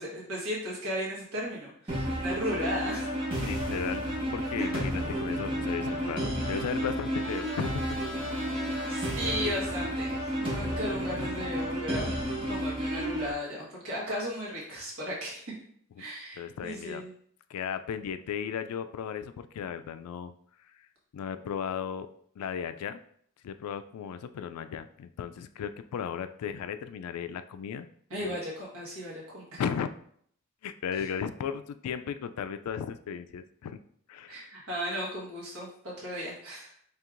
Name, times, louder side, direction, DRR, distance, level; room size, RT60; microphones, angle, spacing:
voice 1, 0.0-3.1 4.6-4.7 8.4-8.5 8.9-12.2 12.5-15.4 16.0-17.1 28.1-29.6 30.9-31.1 34.3-36.7, equal, 75° right, -5 dB, 1.5 m, -35 dB
sound 1, 1.9-13.3, equal, 25° right, 0.9 m, -31 dB
voice 2, 3.4-4.0 4.3-7.8 8.7-9.1 16.0-16.1 16.4-17.0 17.5-20.3 21.1-22.1 22.4-23.0 23.4-27.9 29.6-29.9 30.6-33.8 34.1-34.5, left 7 dB, 85° left, 13 dB, 0.3 m, -35 dB
Trumpet, 5.1-10.2, equal, ahead, 0.6 m, -46 dB
4.5 x 3.3 x 2.5 m, 0.64 s
head